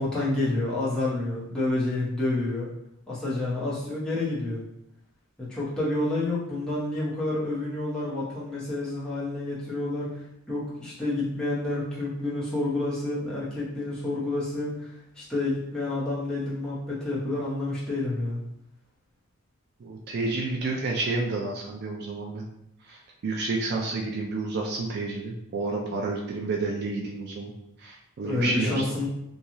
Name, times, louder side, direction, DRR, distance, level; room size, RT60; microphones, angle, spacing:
voice 1, 0.0-2.7 3.1-4.6 5.4-10.1 10.5-14.9 15.2-18.4 28.2-29.1, left 2 dB, 5° left, -9 dB, 0.9 m, -29 dB
voice 2, 19.8-22.4 22.9-27.5 27.8-28.8, right 3 dB, 50° right, -1 dB, 0.4 m, -30 dB
2.9 x 2.3 x 2.6 m, 0.80 s
head